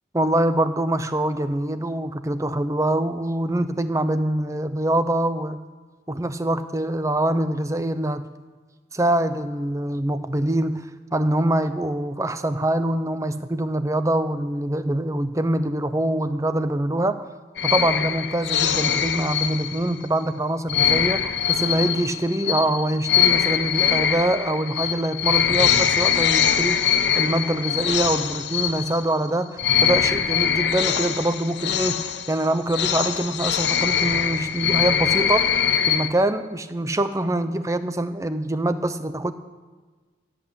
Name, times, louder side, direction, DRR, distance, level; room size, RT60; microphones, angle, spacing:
voice 1, 0.1-5.6 6.1-8.3 8.9-10.8 11.1-17.3 17.6-35.5 35.9-39.3, right 1 dB, 15° right, 11 dB, 0.7 m, -24 dB
sound 1, 17.6-20.0 20.7-29.3 29.6-36.1, left 8 dB, 65° left, 0.8 m, -22 dB
16.5 x 8.5 x 8.1 m, 1.4 s
head